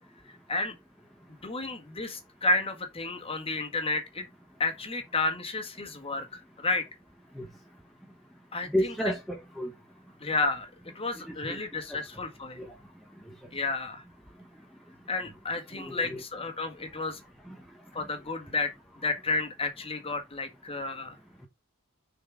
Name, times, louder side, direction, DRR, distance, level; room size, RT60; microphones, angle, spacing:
voice 1, 0.3-0.7 1.4-4.3 4.6-6.9 8.5-8.9 10.2-10.7 11.0-12.7 13.5-14.0 15.1-17.2 17.9-21.2, left 3 dB, 25° left, 1.7 m, -31 dB
voice 2, 8.7-9.7 11.4-11.6 12.6-12.7 15.7-16.2, equal, ahead, 1.0 m, -31 dB
6.8 x 4.5 x 5.0 m
head